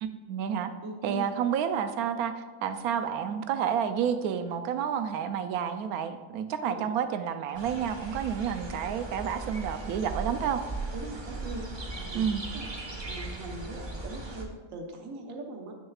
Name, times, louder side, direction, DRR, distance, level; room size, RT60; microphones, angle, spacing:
voice 1, 0.0-0.7 1.0-10.6 12.1-12.4, right 8 dB, 80° right, 9 dB, 1.0 m, -30 dB
voice 2, 0.8-1.2 6.6-6.9 10.9-15.7, right 2 dB, 65° right, 2 dB, 1.3 m, -41 dB
sound 1, 7.5-14.4, right 2 dB, 30° right, 0.5 m, -38 dB
9.8 x 6.5 x 2.4 m, 1.4 s
omnidirectional pair, 1.5 m